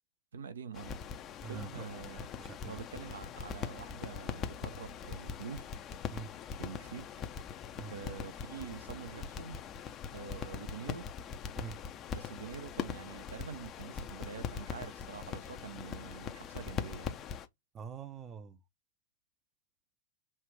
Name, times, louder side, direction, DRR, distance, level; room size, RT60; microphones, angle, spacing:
voice 1, 0.3-1.0 1.5-2.3 2.7-5.7 6.6-7.1 7.8-9.6 10.1-11.0 12.1-17.2, right 6 dB, 70° right, 0.7 m, -46 dB
sound 1, 0.7-17.5, left 7 dB, 30° left, 0.6 m, -42 dB
voice 2, 1.4-1.8 2.2-2.8 6.1-6.3 7.8-7.9 11.6-11.8 17.7-18.6, right 6 dB, 25° right, 0.6 m, -45 dB
5.5 x 2.4 x 3.3 m
figure-of-eight pair, 100°, 0 cm